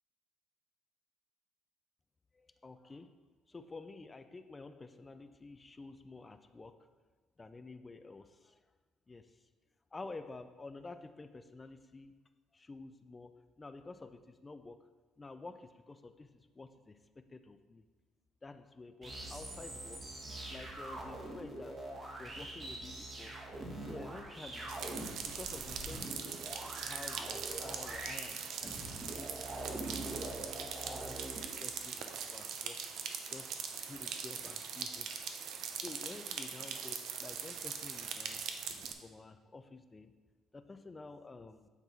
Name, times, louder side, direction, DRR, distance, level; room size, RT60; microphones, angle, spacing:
voice 1, 2.3-3.2 3.5-6.9 7.4-8.6 9.1-9.4 9.9-12.2 12.5-14.9 15.2-17.9 18.4-20.0 20.5-21.9 22.2-23.4 23.8-24.8 25.3-26.4 26.8-29.4 29.8-31.3 31.6-32.8 33.3-35.1 35.7-38.4 39.0-40.1 40.5-41.7, left 3 dB, 20° left, 10 dB, 0.4 m, -50 dB
sound 1, 19.0-31.5, right 1 dB, 30° right, 1.5 m, -44 dB
sound 2, 24.7-38.9, right 7 dB, 70° right, 0.7 m, -41 dB
9.2 x 4.0 x 4.5 m, 1.4 s
cardioid pair, 130°, 0 cm